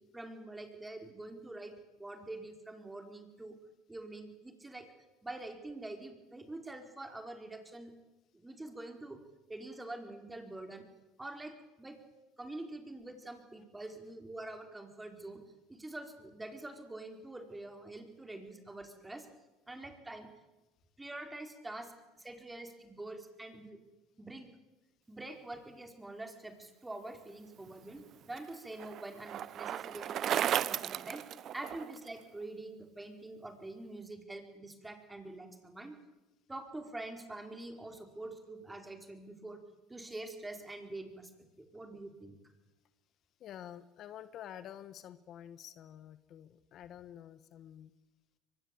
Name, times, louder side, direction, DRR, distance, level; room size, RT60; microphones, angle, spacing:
voice 1, 0.1-3.6 3.9-4.9 5.2-7.9 8.3-9.2 9.5-10.9 11.2-12.0 12.4-15.4 15.7-19.3 19.7-20.3 21.0-23.8 24.2-24.5 25.1-31.3 31.5-36.0 36.5-39.6 39.9-41.3 41.7-42.3, right 2 dB, 10° right, 5 dB, 4.8 m, -45 dB
Bicycle, 27.7-32.1, right 10 dB, 50° right, 0.8 m, -35 dB
voice 2, 43.4-47.9, left 10 dB, 55° left, 13 dB, 1.2 m, -49 dB
23.5 x 21.0 x 8.7 m, 1.1 s
supercardioid pair, 85°, 0 cm